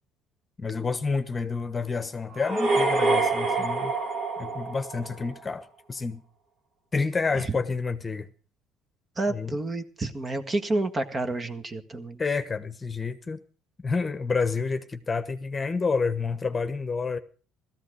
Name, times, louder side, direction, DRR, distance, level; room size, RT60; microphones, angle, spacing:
voice 1, 0.6-3.9 4.4-6.2 6.9-8.3 9.3-9.6 12.2-13.4 13.8-17.2, left 4 dB, 25° left, 1.2 m, -29 dB
sound 1, 2.3-5.4, right 3 dB, 50° right, 3.5 m, -26 dB
voice 2, 9.2-12.2, right 2 dB, 25° right, 1.7 m, -29 dB
16.0 x 14.0 x 4.9 m
cardioid pair, 100°, 0 cm